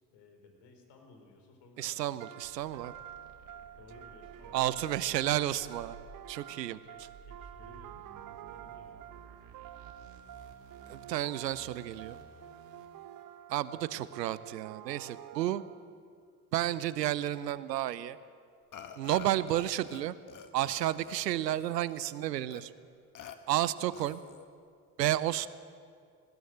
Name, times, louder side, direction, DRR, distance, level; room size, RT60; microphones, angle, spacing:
voice 1, 0.1-2.1 3.5-5.1 6.5-8.0 8.5-9.0 13.7-14.1 21.1-21.2, left 3 dB, 55° left, 4 dB, 4.6 m, -58 dB
voice 2, 1.8-2.9 4.5-6.0 6.3-6.8 10.9-12.2 13.5-15.6 16.5-18.2 19.0-20.1 20.5-22.7 23.5-24.2 25.0-25.5, right 13 dB, 80° right, 17 dB, 0.8 m, -31 dB
sound 1, 2.2-16.1, right 10 dB, 40° right, 0.9 m, -49 dB
sound 2, 2.4-13.2, right 6 dB, 60° right, 2.2 m, -54 dB
Burping eructation, 18.7-20.0 20.3-22.1 22.5-22.6 23.1-23.4 23.9-24.5, left 8 dB, 40° left, 1.8 m, -48 dB
20.0 x 17.0 x 7.9 m, 2.2 s
hypercardioid pair, 65°, 49 cm